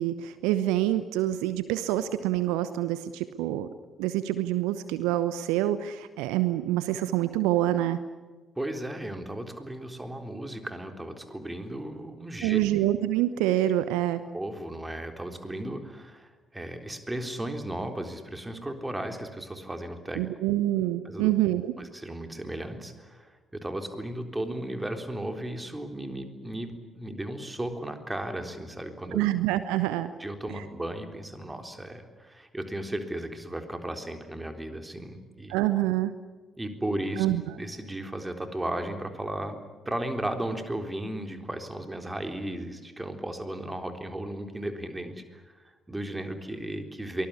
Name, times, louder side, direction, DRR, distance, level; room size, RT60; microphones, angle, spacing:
voice 1, 0.0-3.7 4.0-8.0 12.4-14.2 20.2-21.7 29.1-30.1 35.5-36.1 37.2-37.4, right 14 dB, 65° right, 13 dB, 0.9 m, -26 dB
voice 2, 8.6-12.6 14.3-20.2 21.0-21.3 21.8-29.2 30.2-35.6 36.6-37.3 37.5-47.3, right 1 dB, 10° right, 6 dB, 3.8 m, -35 dB
24.0 x 20.0 x 9.8 m, 1.3 s
figure-of-eight pair, 45°, 0 cm